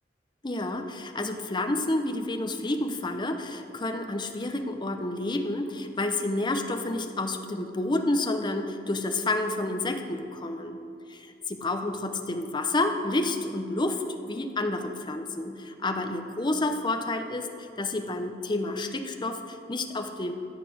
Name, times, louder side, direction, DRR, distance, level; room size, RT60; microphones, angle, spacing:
voice 1, 0.4-10.8 11.1-20.3, left 2 dB, 25° left, 6 dB, 0.9 m, -29 dB
13.5 x 8.4 x 6.3 m, 2.5 s
head